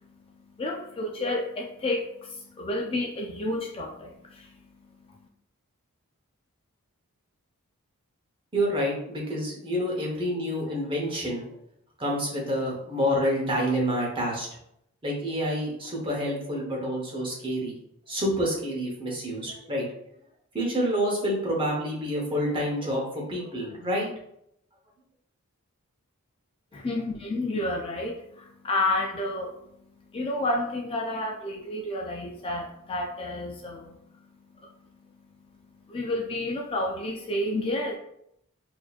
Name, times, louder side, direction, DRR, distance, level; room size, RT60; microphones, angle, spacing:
voice 1, 0.0-5.3 26.7-38.0, left 1 dB, 25° left, 1 dB, 0.3 m, -31 dB
voice 2, 8.5-11.4 12.0-14.5 15.0-17.8 18.1-19.8 20.5-24.1, equal, 25° right, -2 dB, 0.9 m, -28 dB
4.1 x 2.7 x 2.4 m, 0.76 s
head